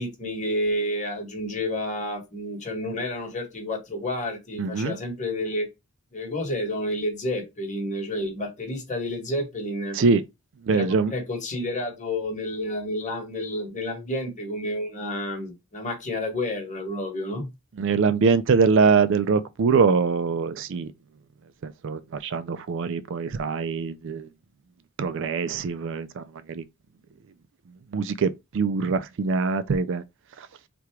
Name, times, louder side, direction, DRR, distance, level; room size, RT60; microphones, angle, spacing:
voice 1, 0.0-5.7 6.1-10.0 10.7-17.5, left 1 dB, 35° left, 1.6 m, -30 dB
voice 2, 4.6-5.0 9.9-10.2 10.6-11.1 17.8-20.9 21.6-24.3 25.0-26.2 26.5-26.6 27.9-30.0 30.4-30.5, right 5 dB, 60° right, 0.4 m, -23 dB
3.5 x 2.9 x 4.7 m
head